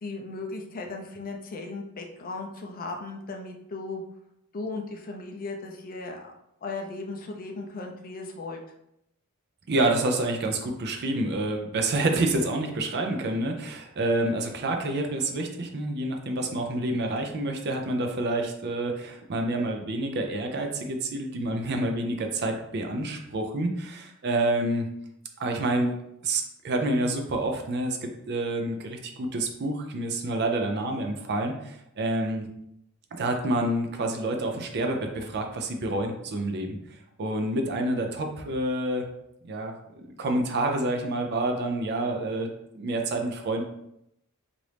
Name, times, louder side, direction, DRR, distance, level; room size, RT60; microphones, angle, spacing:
voice 1, 0.0-4.0 4.5-6.3 6.6-8.6, left 3 dB, 40° left, 2 dB, 0.4 m, -36 dB
voice 2, 9.7-24.9 25.4-25.9 26.2-32.5 33.1-36.8 37.2-39.1 39.4-42.5 42.7-43.6, right 2 dB, 50° right, 4 dB, 0.5 m, -28 dB
3.0 x 2.5 x 3.2 m, 0.79 s
head